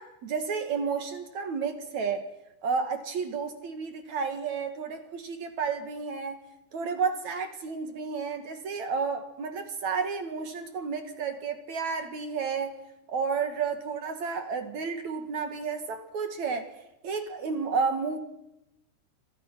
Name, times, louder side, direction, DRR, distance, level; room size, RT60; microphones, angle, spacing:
voice 1, 0.0-2.2 2.6-6.4 6.7-12.8 13.1-16.7 17.0-18.2, right 5 dB, 50° right, 7 dB, 2.6 m, -31 dB
29.0 x 26.5 x 6.1 m, 0.90 s
omnidirectional pair, 5.2 m